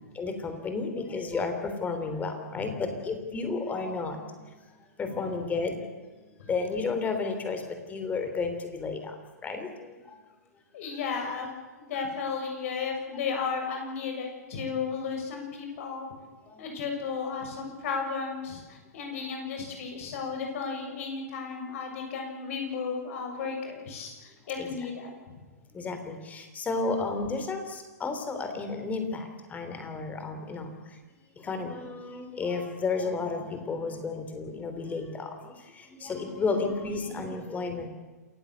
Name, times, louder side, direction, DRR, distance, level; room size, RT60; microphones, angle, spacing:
voice 1, 0.1-4.5 5.0-5.8 6.5-9.1 9.4-9.9 16.5-16.6 24.6-24.7 25.7-30.7 31.4-37.9, left 4 dB, 15° left, 6 dB, 3.6 m, -32 dB
voice 2, 10.7-11.5 11.8-16.1 16.6-25.2 29.6-29.9, left 5 dB, 50° left, 3 dB, 7.1 m, -34 dB
28.0 x 15.5 x 8.3 m, 1.3 s
figure-of-eight pair, 115°, 9 cm